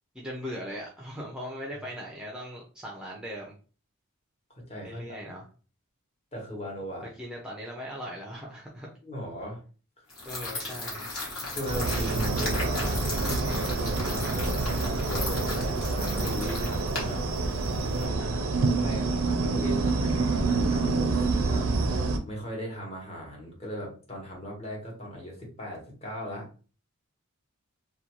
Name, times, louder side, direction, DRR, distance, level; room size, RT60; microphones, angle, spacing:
voice 1, 0.1-3.5 4.8-5.4 7.2-8.9 10.2-11.1 18.2-18.4, equal, 5° right, -3 dB, 0.4 m, -39 dB
voice 2, 4.6-5.4 6.3-7.1 9.0-9.6 11.5-17.3 17.8-18.3 18.6-21.7 22.2-26.5, equal, 30° left, -2 dB, 1.0 m, -38 dB
sound 1, 10.1-18.0, left 2 dB, 70° left, 1.1 m, -36 dB
sound 2, 11.7-22.2, right 3 dB, 70° right, 0.4 m, -27 dB
2.5 x 2.2 x 2.9 m, 0.37 s
head